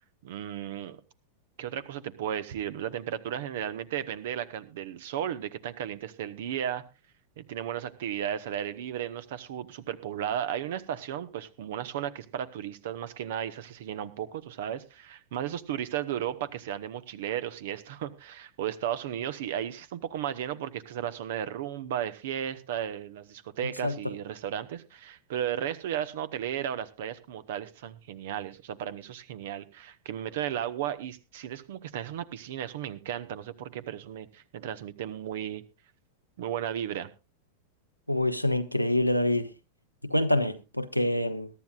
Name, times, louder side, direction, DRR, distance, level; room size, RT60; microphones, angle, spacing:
voice 1, 0.2-1.0 1.6-6.8 7.4-35.6 36.4-37.1, right 10 dB, 55° right, 1.1 m, -34 dB
voice 2, 38.1-39.5 40.0-41.5, left 1 dB, 90° left, 0.9 m, -26 dB
22.0 x 12.0 x 2.4 m
figure-of-eight pair, 90°, 0 cm